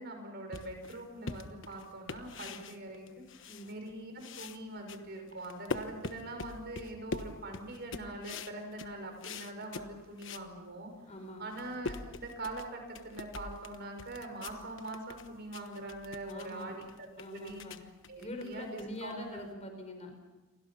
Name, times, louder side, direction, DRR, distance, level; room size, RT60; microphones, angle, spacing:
voice 1, 0.0-3.1 3.7-10.9 11.4-17.1 17.3-17.7 18.1-19.5, right 2 dB, 50° right, 4 dB, 6.1 m, -43 dB
sound 1, 0.5-3.9 4.2-10.5 10.9-11.0 11.4-19.5, left 3 dB, 60° left, 1.2 m, -44 dB
voice 2, 11.1-11.5 16.2-16.7 17.2-17.8 18.2-20.3, left 1 dB, 30° left, 5 dB, 4.9 m, -44 dB
29.0 x 24.0 x 5.7 m, 1.1 s
head